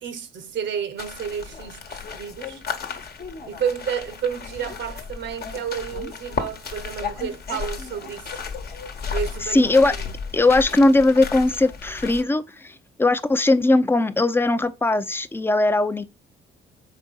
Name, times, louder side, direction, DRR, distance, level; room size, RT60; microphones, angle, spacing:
voice 1, 0.0-2.6 3.5-8.4 9.1-9.7 10.0-10.1, right 7 dB, 65° right, 0.9 m, -31 dB
sound 1, 1.0-12.2, left 5 dB, 50° left, 1.1 m, -34 dB
voice 2, 9.5-10.0 10.3-16.1, left 2 dB, 10° left, 0.5 m, -19 dB
4.3 x 4.2 x 5.3 m
cardioid pair, 90°, 20 cm